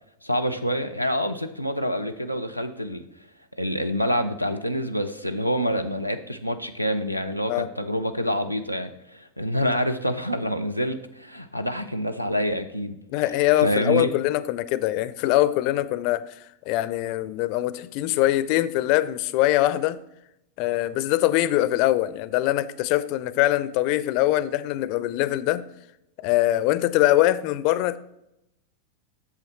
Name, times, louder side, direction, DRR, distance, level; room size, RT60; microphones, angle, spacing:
voice 1, 0.2-3.0 3.6-13.0 13.6-14.1, equal, 90° right, 0.5 m, -27 dB
voice 2, 13.1-20.0 20.6-25.6 26.2-28.0, left 15 dB, 45° left, 0.4 m, -23 dB
8.4 x 6.8 x 3.1 m
figure-of-eight pair, 90°, 0 cm